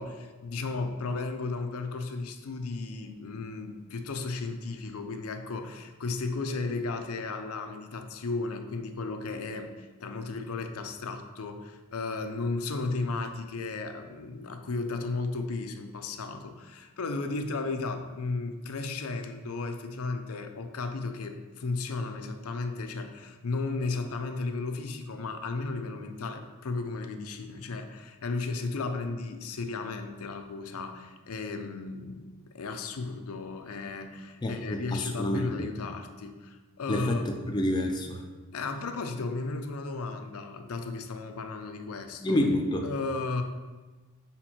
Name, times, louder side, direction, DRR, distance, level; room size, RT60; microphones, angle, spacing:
voice 1, 0.0-37.5 38.5-42.4 42.8-43.4, left 3 dB, 70° left, 6 dB, 0.5 m, -34 dB
voice 2, 34.4-35.7 36.9-38.2 42.2-42.9, left 1 dB, 20° left, 3 dB, 0.4 m, -28 dB
5.6 x 4.4 x 4.4 m, 1.3 s
head